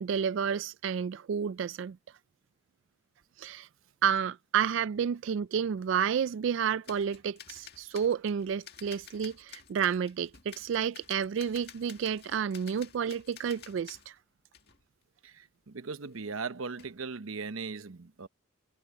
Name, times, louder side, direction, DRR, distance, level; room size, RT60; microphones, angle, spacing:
voice 1, 0.0-2.0 3.4-3.7 4.0-14.1, right 7 dB, 60° right, 0.3 m, -30 dB
sound 1, 6.8-14.1 14.5-14.8 16.1-16.4 16.7-17.0, left 9 dB, 50° left, 2.0 m, -52 dB
voice 2, 15.2-18.3, right 4 dB, 80° right, 0.9 m, -38 dB
head